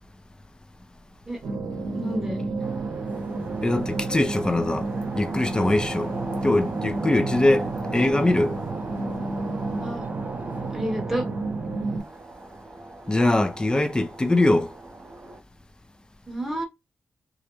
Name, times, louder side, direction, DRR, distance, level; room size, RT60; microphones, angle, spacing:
sound 1, 1.4-12.0, right 3 dB, 85° right, 0.7 m, -31 dB
voice 1, 2.0-2.4 9.8-10.0 10.7-11.2 16.3-16.6, equal, 5° right, 0.9 m, -29 dB
sound 2, 2.6-15.4, right 2 dB, 35° right, 0.6 m, -38 dB
voice 2, 3.6-4.9 5.2-6.1 6.4-7.7 7.9-8.5 13.1-14.7, left 2 dB, 20° left, 0.4 m, -22 dB
2.4 x 2.1 x 2.9 m
cardioid pair, 90°, 4 cm